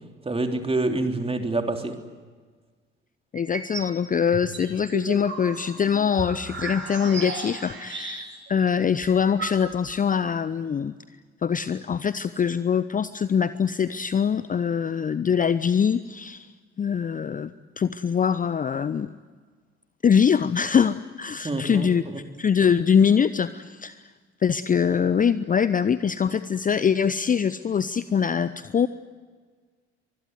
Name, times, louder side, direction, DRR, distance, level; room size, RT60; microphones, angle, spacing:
voice 1, 0.2-1.9 21.4-22.2, right 2 dB, 15° right, 4 dB, 3.4 m, -27 dB
voice 2, 3.3-10.9 11.4-16.5 16.8-19.1 20.0-22.0 22.4-23.9 24.4-28.9, left 7 dB, 25° left, 15 dB, 0.7 m, -23 dB
sound 1, 3.4-3.9 4.3-8.5 8.8-8.9 9.0-10.0, right 4 dB, 35° right, 6.4 m, -35 dB
24.5 x 21.0 x 9.5 m, 1.5 s
figure-of-eight pair, 50°, 33 cm